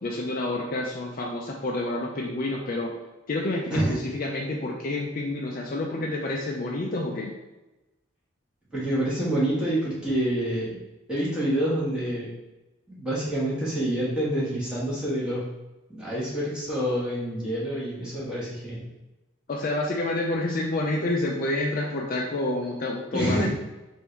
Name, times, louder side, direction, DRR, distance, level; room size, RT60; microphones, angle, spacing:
voice 1, 0.0-2.9 3.3-7.3 19.5-23.5, left 2 dB, 40° left, -1 dB, 0.4 m, -28 dB
voice 2, 8.7-10.8 11.1-12.3 12.9-15.4 15.9-18.8 23.1-23.5, right 1 dB, 5° right, -9 dB, 1.4 m, -27 dB
3.6 x 2.6 x 4.4 m, 1.0 s
head